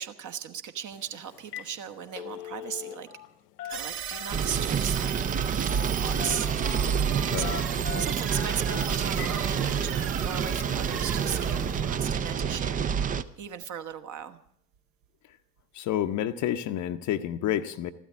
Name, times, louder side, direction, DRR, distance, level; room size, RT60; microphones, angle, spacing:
voice 1, 0.0-3.1 3.6-5.3 5.8-6.5 6.9-7.6 8.0-13.0 13.4-14.4, right 8 dB, 35° right, 9 dB, 1.2 m, -37 dB
Telephone, 0.9-1.1 1.4-1.7 2.0-3.3 3.6-4.5 5.7-5.9 6.2-6.9 7.4-9.4 9.8-9.9 10.5-10.6, left 10 dB, 70° left, 0.8 m, -40 dB
sound 1, 3.7-12.9, right 8 dB, 60° right, 1.8 m, -37 dB
sound 2, 4.3-13.2, right 7 dB, 15° right, 0.5 m, -28 dB
voice 2, 15.7-17.9, left 11 dB, 35° left, 10 dB, 0.8 m, -29 dB
14.0 x 12.5 x 7.3 m, 0.71 s
figure-of-eight pair, 65°, 49 cm